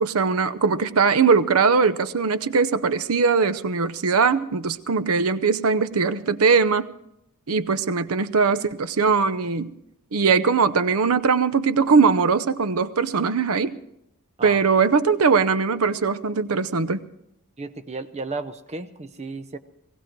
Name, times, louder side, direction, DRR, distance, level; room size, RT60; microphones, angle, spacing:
voice 1, 0.0-6.9 7.5-9.7 10.1-13.8 14.4-17.1, right 5 dB, 70° right, 14 dB, 0.7 m, -20 dB
voice 2, 17.6-19.6, right 3 dB, 30° right, 10 dB, 0.8 m, -34 dB
19.0 x 15.5 x 4.6 m, 0.80 s
head